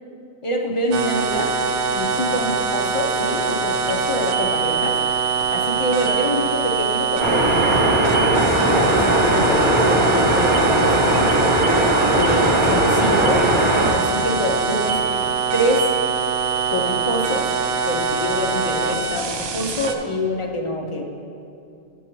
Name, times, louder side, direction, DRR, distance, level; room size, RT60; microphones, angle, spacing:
voice 1, 0.4-1.6 1.9-5.0 5.5-11.4 12.1-13.5 13.9-15.0 15.5-16.0 16.7-17.5 17.8-21.0, equal, 40° left, 2 dB, 0.5 m, -26 dB
sound 1, 0.9-19.9, right 5 dB, 85° right, 0.9 m, -23 dB
sound 2, 7.2-13.9, right 1 dB, 30° right, 0.8 m, -19 dB
10.5 x 6.3 x 3.0 m, 2.6 s
omnidirectional pair, 1.2 m